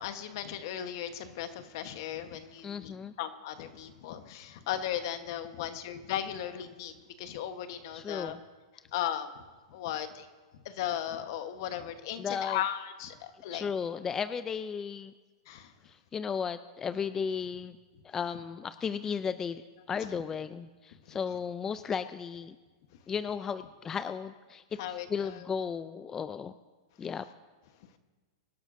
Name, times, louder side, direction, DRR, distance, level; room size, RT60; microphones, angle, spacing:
voice 1, 0.0-2.9 3.2-6.9 7.2-8.4 8.9-9.3 9.7-10.3 10.6-13.6 15.5-15.7 21.1-21.2 24.8-25.5, left 10 dB, 60° left, 9 dB, 1.1 m, -36 dB
voice 2, 2.6-3.1 7.9-8.4 12.2-12.6 13.5-15.1 15.8-17.8 18.0-19.6 19.9-22.6 23.1-26.5 27.0-27.3, left 6 dB, 20° left, 12 dB, 0.4 m, -35 dB
24.5 x 11.5 x 2.6 m, 1.3 s
hypercardioid pair, 130°, 2 cm